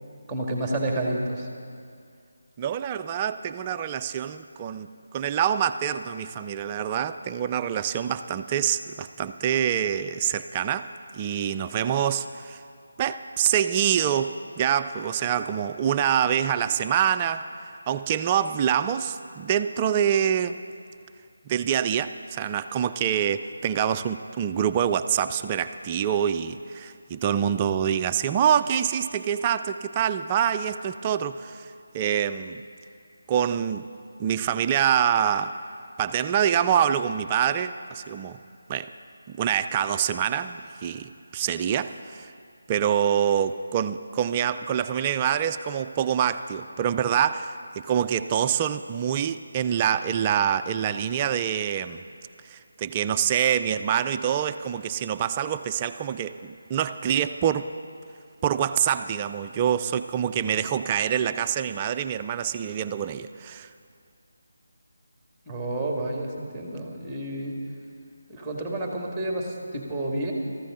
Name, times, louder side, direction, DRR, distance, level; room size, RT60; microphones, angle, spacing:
voice 1, 0.3-1.5 65.5-67.6 68.3-70.3, right 1 dB, 5° right, -1 dB, 2.0 m, -30 dB
voice 2, 2.6-12.6 13.0-17.4 17.9-20.6 21.5-32.6 33.3-33.9 34.2-35.6 36.0-38.4 38.7-38.9 39.3-42.3 42.7-52.0 52.5-57.7 58.4-63.7, right 9 dB, 20° right, 10 dB, 0.4 m, -26 dB
18.5 x 14.5 x 3.8 m, 2.3 s
figure-of-eight pair, 160°, 0 cm